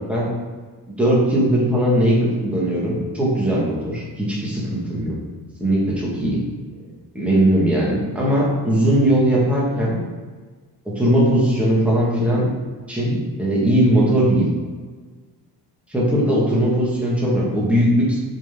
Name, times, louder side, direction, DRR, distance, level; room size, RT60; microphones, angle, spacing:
voice 1, 0.9-5.1 5.6-6.4 6.8-10.0 10.9-12.5 12.9-14.5 15.9-18.2, right 1 dB, 5° right, -6 dB, 1.4 m, -19 dB
7.3 x 3.9 x 3.6 m, 1.4 s
cardioid pair, 165°, 40 cm